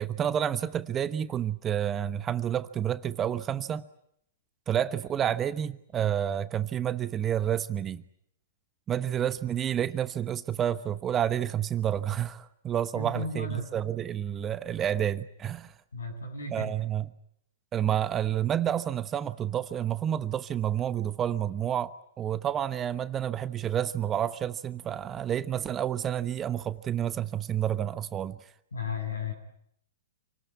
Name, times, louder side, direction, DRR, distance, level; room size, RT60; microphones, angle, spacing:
voice 1, 0.0-3.8 4.7-8.0 8.9-15.7 16.5-17.1 17.7-28.4, right 10 dB, 25° right, 1.1 m, -29 dB
voice 2, 12.9-13.6 15.9-16.7 28.7-29.3, left 4 dB, 85° left, 7.8 m, -34 dB
28.0 x 19.0 x 9.6 m
hypercardioid pair, 115°, 0 cm